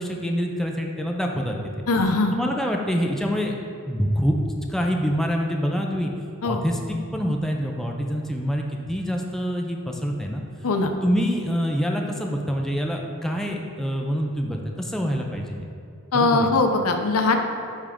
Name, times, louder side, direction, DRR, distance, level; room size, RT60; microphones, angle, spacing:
voice 1, 0.0-1.6 2.3-3.6 3.9-4.4 4.7-6.1 6.4-10.4 11.0-15.6 16.1-16.5, equal, ahead, 1 dB, 0.4 m, -26 dB
voice 2, 1.9-2.4 6.4-6.6 10.6-10.9 16.1-17.4, left 3 dB, 70° left, 5 dB, 0.6 m, -21 dB
10.0 x 3.4 x 3.6 m, 2.6 s
head